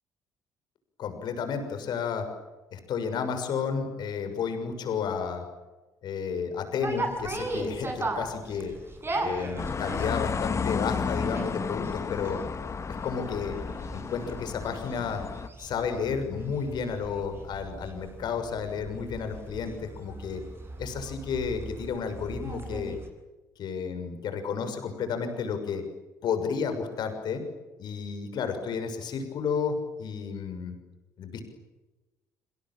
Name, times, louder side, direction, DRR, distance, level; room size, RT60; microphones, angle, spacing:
voice 1, 1.0-2.3 2.7-5.5 6.0-8.7 9.2-12.4 12.9-13.6 13.9-15.2 15.6-20.4 20.8-23.0 23.6-25.8 26.2-27.4 27.8-30.7 31.2-31.4, left 6 dB, 55° left, 7 dB, 6.5 m, -32 dB
sound 1, 6.8-23.1, right 2 dB, 25° right, 7.7 m, -38 dB
sound 2, 9.6-15.5, left 5 dB, 35° left, 1.8 m, -32 dB
27.5 x 27.0 x 7.5 m, 1.1 s
figure-of-eight pair, 50°, 9 cm